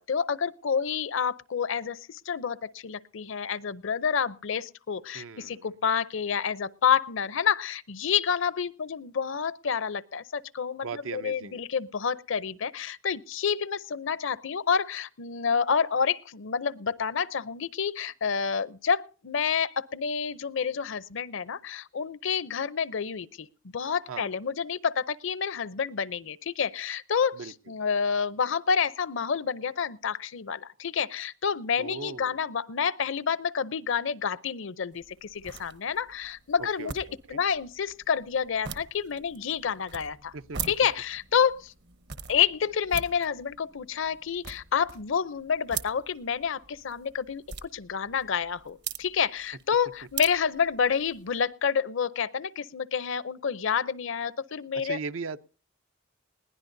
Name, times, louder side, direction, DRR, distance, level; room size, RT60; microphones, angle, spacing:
voice 1, 0.1-23.5 23.7-27.4 27.7-37.0 37.3-40.3 40.7-41.7 42.3-55.0, left 7 dB, 65° left, 0.6 m, -29 dB
voice 2, 5.1-5.7 10.8-11.6 24.1-24.3 27.3-27.5 31.8-32.4 36.6-37.4 40.3-40.6 54.7-55.4, right 4 dB, 75° right, 0.6 m, -38 dB
sound 1, 34.9-51.4, right 7 dB, 60° right, 1.0 m, -43 dB
21.0 x 16.0 x 2.6 m
head